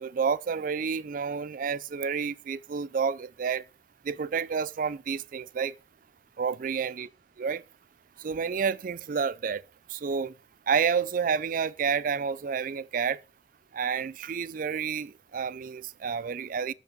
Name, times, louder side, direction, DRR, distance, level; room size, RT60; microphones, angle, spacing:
voice 1, 0.0-3.6 4.0-5.7 6.4-7.1 7.4-7.6 8.2-9.6 9.9-10.3 10.7-13.2 13.7-16.7, right 6 dB, 45° right, 0.3 m, -29 dB
7.4 x 5.4 x 5.9 m
head